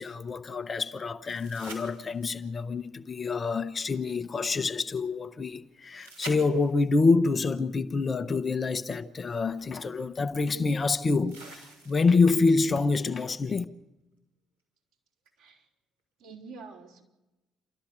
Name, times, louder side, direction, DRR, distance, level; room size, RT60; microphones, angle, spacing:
voice 1, 0.0-13.6, left 4 dB, 35° left, 1.0 m, -27 dB
sound 1, 1.2-2.5 6.0-7.0 8.9-9.0 11.3-12.3 15.3-15.4, right 3 dB, 85° right, 3.9 m, -45 dB
voice 2, 16.2-17.0, right 4 dB, 60° right, 3.8 m, -46 dB
29.5 x 13.0 x 6.9 m
figure-of-eight pair, 45°, 0 cm